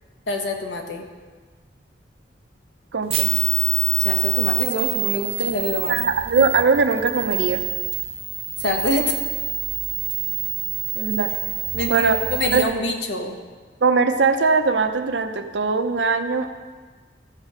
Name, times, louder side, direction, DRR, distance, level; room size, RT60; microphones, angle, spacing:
voice 1, 0.3-1.1 4.0-5.9 8.6-9.2 11.7-13.4, left 1 dB, 80° left, 3 dB, 1.3 m, -25 dB
voice 2, 2.9-3.3 5.9-7.6 10.9-11.3 11.9-12.2 12.5-12.8 13.8-16.5, right 4 dB, 85° right, 7 dB, 0.7 m, -20 dB
sound 1, 3.1-12.6, right 13 dB, 35° right, 0.8 m, -26 dB
14.0 x 6.5 x 5.0 m, 1.4 s
head